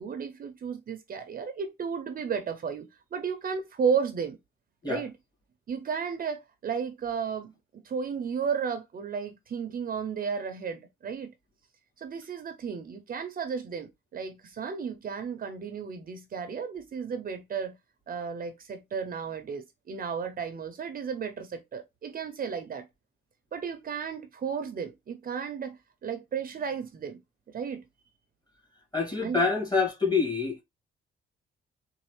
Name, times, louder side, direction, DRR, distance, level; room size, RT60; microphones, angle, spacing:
voice 1, 0.0-4.4 4.8-5.1 5.7-7.5 7.8-11.3 12.0-17.7 18.1-22.9 23.5-27.2 27.5-27.8 29.2-29.4, right 6 dB, 45° right, 0.7 m, -33 dB
voice 2, 28.9-30.6, left 4 dB, 20° left, 2.3 m, -26 dB
3.9 x 2.5 x 3.2 m
cardioid pair, 90°, 20 cm